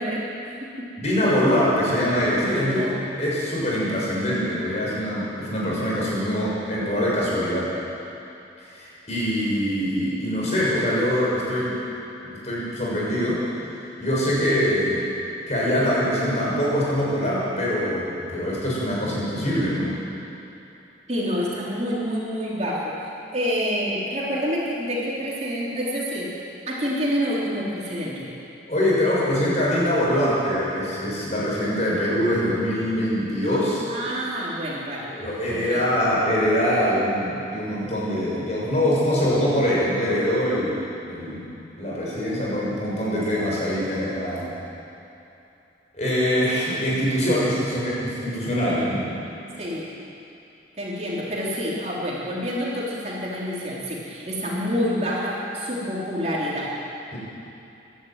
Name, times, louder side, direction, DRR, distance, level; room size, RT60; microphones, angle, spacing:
voice 1, 0.0-0.9 2.6-3.0 21.1-26.3 26.7-28.3 33.9-35.1 35.5-35.9 49.6-49.9 50.8-56.7, equal, 35° right, -6 dB, 3.7 m, -28 dB
voice 2, 1.0-7.7 8.6-11.8 12.2-13.4 14.0-15.1 15.5-20.0 28.7-33.8 35.1-40.8 41.1-41.5 41.8-44.5 45.9-49.1 57.1-57.2, equal, 35° left, -6 dB, 6.9 m, -23 dB
25.0 x 11.5 x 9.1 m, 2.8 s
head